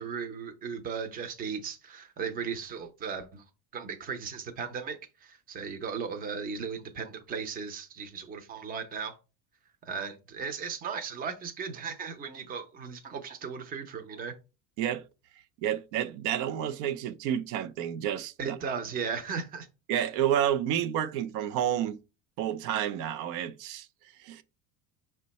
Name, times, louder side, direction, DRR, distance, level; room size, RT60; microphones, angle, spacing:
voice 1, 0.0-3.4 3.7-9.2 9.8-14.3 18.4-19.7, right 6 dB, 25° right, 0.5 m, -36 dB
voice 2, 15.6-18.8 19.9-22.0 22.4-23.9 24.2-24.4, right 10 dB, 80° right, 0.5 m, -30 dB
5.4 x 2.2 x 4.0 m
cardioid pair, 150°, 39 cm